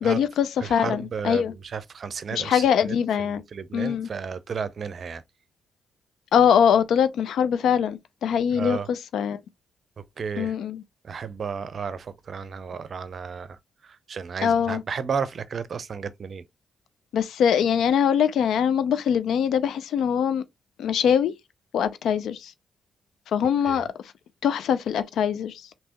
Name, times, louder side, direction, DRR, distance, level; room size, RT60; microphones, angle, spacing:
voice 1, 0.0-1.5 2.3-3.4 3.7-4.1 6.3-9.4 10.4-10.8 14.4-14.8 17.1-20.4 20.8-21.3 21.7-22.5 23.3-23.9 24.4-25.7, left 8 dB, 80° left, 0.4 m, -22 dB
voice 2, 0.6-3.0 3.2-5.2 8.5-8.9 10.0-10.6 11.0-16.5 23.6-23.8, right 6 dB, 60° right, 0.5 m, -33 dB
3.3 x 2.9 x 2.9 m
supercardioid pair, 50°, 0 cm